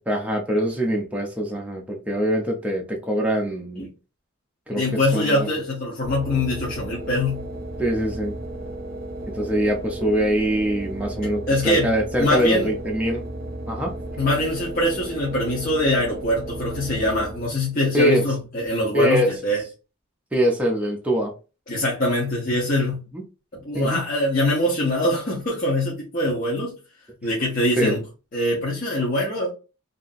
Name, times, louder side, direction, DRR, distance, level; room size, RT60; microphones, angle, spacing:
voice 1, 0.1-3.8 4.7-5.5 7.8-8.4 9.3-13.2 13.7-13.9 17.9-18.3 18.9-19.3 20.3-21.3 23.1-23.2 23.7-24.0 27.8-28.0, equal, 5° right, 0.5 m, -23 dB
voice 2, 4.7-7.5 11.5-11.9 12.2-12.7 14.2-19.6 21.7-23.0 23.5-26.7 27.2-28.0 28.3-29.5, left 1 dB, 40° left, 0.7 m, -23 dB
sound 1, 6.0-17.7, right 1 dB, 45° right, 0.6 m, -34 dB
2.8 x 2.5 x 2.5 m
head